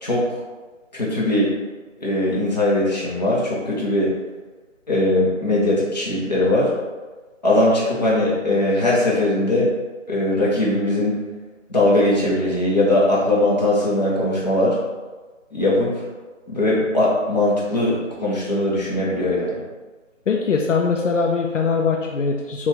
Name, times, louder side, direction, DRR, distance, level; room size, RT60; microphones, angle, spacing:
voice 1, 0.9-1.5 2.0-4.1 4.9-6.7 7.4-9.7 10.1-11.2 11.7-14.7 15.5-15.9 16.5-19.6, left 1 dB, 35° left, -6 dB, 0.8 m, -20 dB
voice 2, 20.3-22.7, left 5 dB, 70° left, 0 dB, 0.5 m, -21 dB
3.7 x 2.3 x 2.9 m, 1.3 s
figure-of-eight pair, 160°, 39 cm